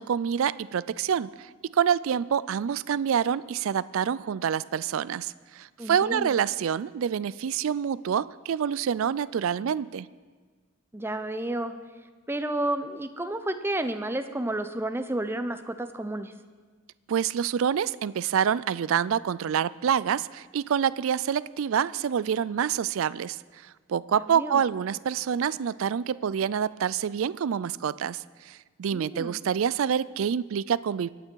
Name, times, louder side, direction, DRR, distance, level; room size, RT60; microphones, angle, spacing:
voice 1, 0.0-10.1 17.1-31.1, right 8 dB, 65° right, 19 dB, 0.3 m, -27 dB
voice 2, 5.8-6.3 10.9-11.7 12.3-16.3 24.1-24.6 28.9-29.4, right 1 dB, 10° right, 9 dB, 0.6 m, -31 dB
24.0 x 9.1 x 4.6 m, 1.4 s
head